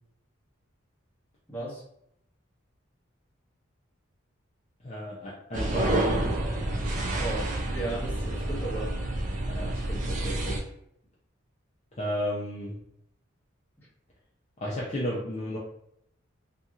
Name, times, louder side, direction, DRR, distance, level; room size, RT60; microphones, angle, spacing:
voice 1, 1.5-1.8 7.2-8.9, right 2 dB, 10° left, -7 dB, 0.9 m, -35 dB
voice 2, 4.8-6.3 8.4-8.8 9.5-10.7 12.0-12.7 14.6-15.6, equal, 30° left, -6 dB, 0.5 m, -33 dB
sound 1, 5.5-10.6, right 1 dB, 35° right, 0.4 m, -29 dB
2.7 x 2.7 x 2.4 m, 0.74 s
head